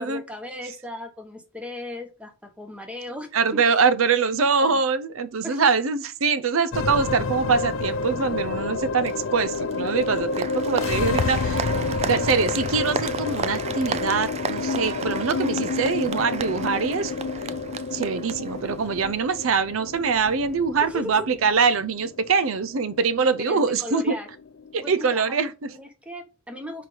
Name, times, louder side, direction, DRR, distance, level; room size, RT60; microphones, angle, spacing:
voice 1, 0.0-3.6 4.6-4.8 5.4-5.7 20.8-21.5 23.5-24.3 24.8-26.9, left 1 dB, 5° right, 1.2 m, -37 dB
voice 2, 3.3-17.1 17.9-24.1 24.7-25.7, right 5 dB, 85° right, 0.6 m, -23 dB
sound 1, 6.7-25.2, left 4 dB, 80° left, 0.5 m, -29 dB
Applause, 9.0-19.1, right 6 dB, 30° right, 0.4 m, -34 dB
5.0 x 4.5 x 5.1 m
head